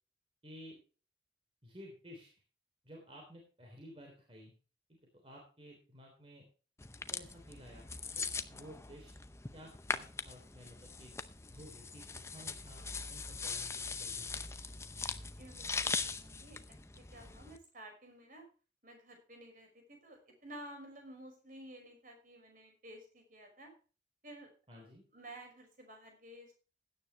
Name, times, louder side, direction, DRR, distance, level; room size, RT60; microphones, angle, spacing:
voice 1, 0.4-0.8 1.6-2.3 2.8-4.5 4.9-6.4 7.1-7.9 8.1-9.1 9.5-11.1 11.5-14.4 24.7-25.0, equal, 30° right, 0 dB, 3.3 m, -54 dB
sound 1, 6.8-17.6, left 4 dB, 15° left, 0.6 m, -41 dB
voice 2, 15.4-16.6 16.9-18.5 18.8-23.7 24.2-26.5, right 1 dB, 45° right, 3 dB, 5.5 m, -53 dB
16.0 x 9.9 x 3.3 m, 0.36 s
head